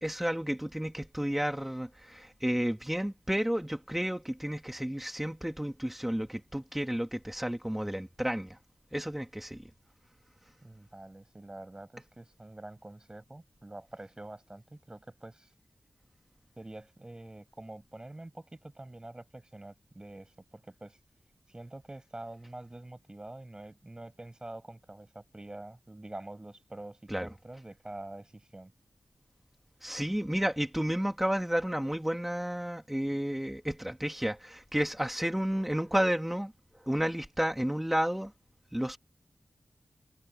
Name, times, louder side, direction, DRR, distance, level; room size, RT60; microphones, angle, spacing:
voice 1, 0.0-8.6 8.9-9.6 27.1-27.3 29.8-36.5 36.8-38.3 38.7-39.0, equal, 5° right, 1.2 m, -31 dB
voice 2, 10.6-15.5 16.6-21.0 21.5-28.7, right 2 dB, 20° right, 7.1 m, -46 dB
wide cardioid pair, 110°, 4 cm